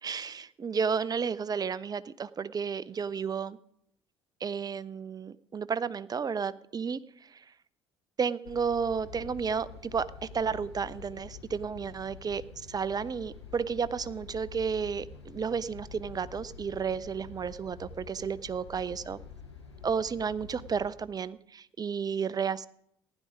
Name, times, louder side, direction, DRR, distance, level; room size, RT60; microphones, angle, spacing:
voice 1, 0.0-3.6 4.4-7.4 8.2-19.2 19.8-22.7, right 6 dB, 30° right, 18 dB, 0.6 m, -32 dB
sound 1, 8.4-20.9, left 6 dB, 85° left, 1.4 m, -47 dB
15.5 x 11.0 x 5.0 m, 0.72 s
figure-of-eight pair, 55°, 14 cm